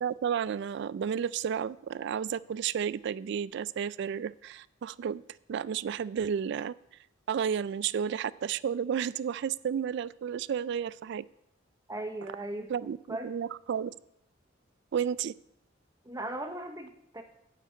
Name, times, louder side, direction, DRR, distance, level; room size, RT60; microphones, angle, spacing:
voice 1, 0.0-5.2 5.5-6.7 7.3-11.2 12.7-13.9 14.9-15.3, right 8 dB, 60° right, 19 dB, 0.3 m, -32 dB
voice 2, 11.9-12.7 13.1-13.3 16.0-17.2, right 1 dB, 15° right, 6 dB, 0.7 m, -37 dB
9.3 x 5.8 x 8.3 m, 0.77 s
head